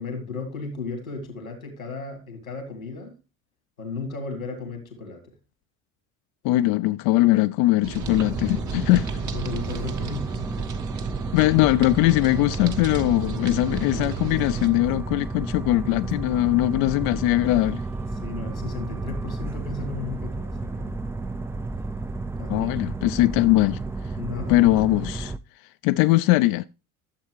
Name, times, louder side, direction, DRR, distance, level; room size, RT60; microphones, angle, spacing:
voice 1, 0.0-3.2 3.8-5.3 9.3-10.4 13.7-14.4 18.2-21.0 22.4-22.8 24.2-24.6, left 4 dB, 90° left, 2.0 m, -35 dB
voice 2, 6.4-9.1 11.3-17.8 22.5-23.8 24.5-25.3 25.8-26.6, left 18 dB, 55° left, 0.5 m, -21 dB
sound 1, 7.8-14.7, right 7 dB, 45° right, 1.3 m, -35 dB
sound 2, 8.0-25.4, right 3 dB, 5° right, 0.3 m, -32 dB
sound 3, 17.2-23.3, left 3 dB, 15° left, 0.8 m, -45 dB
12.0 x 7.2 x 3.1 m
figure-of-eight pair, 60°, 41 cm